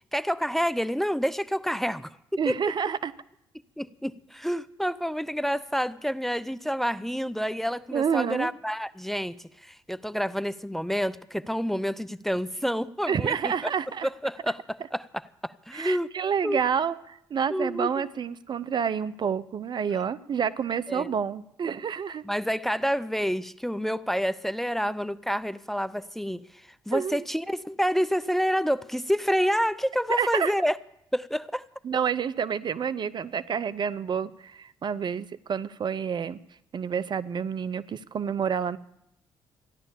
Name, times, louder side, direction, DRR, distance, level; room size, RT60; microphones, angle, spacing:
voice 1, 0.0-2.6 3.8-13.5 14.0-16.1 16.4-16.6 17.5-18.1 20.9-21.1 22.2-30.8 31.1-31.6, equal, 5° left, 15 dB, 0.6 m, -28 dB
voice 2, 2.4-3.1 7.9-8.5 13.1-14.1 15.7-22.2 26.9-27.2 30.1-30.5 31.8-36.4 36.7-38.8, right 7 dB, 45° right, 17 dB, 0.6 m, -28 dB
14.0 x 11.0 x 7.1 m, 0.80 s
hypercardioid pair, 45°, 10 cm